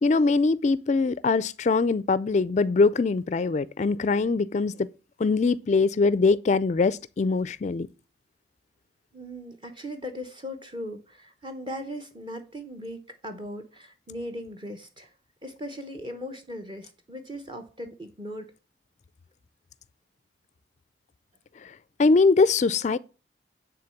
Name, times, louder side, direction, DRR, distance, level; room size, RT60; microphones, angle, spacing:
voice 1, 0.0-4.9 5.2-7.9 21.6-21.7 22.0-23.0, left 4 dB, 40° left, 0.4 m, -22 dB
voice 2, 9.1-15.1 15.4-18.5, equal, 25° right, 1.0 m, -38 dB
9.6 x 3.8 x 7.1 m
head